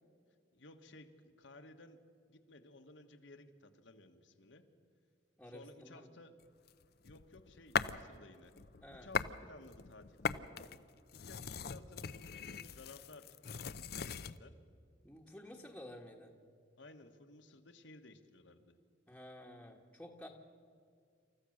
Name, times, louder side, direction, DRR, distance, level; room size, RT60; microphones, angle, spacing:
voice 1, 0.5-2.0 2.3-4.6 5.4-6.4 7.0-8.5 8.9-10.5 11.1-14.5 16.8-18.7, left 2 dB, 75° left, 6 dB, 1.5 m, -57 dB
voice 2, 5.4-6.1 8.8-9.1 15.0-16.3 19.1-20.3, left 1 dB, 5° left, -1 dB, 1.3 m, -52 dB
sound 1, 6.7-8.1 8.5-9.4 9.7-14.4, left 6 dB, 55° left, 0.6 m, -40 dB
28.0 x 14.5 x 6.5 m, 2.2 s
head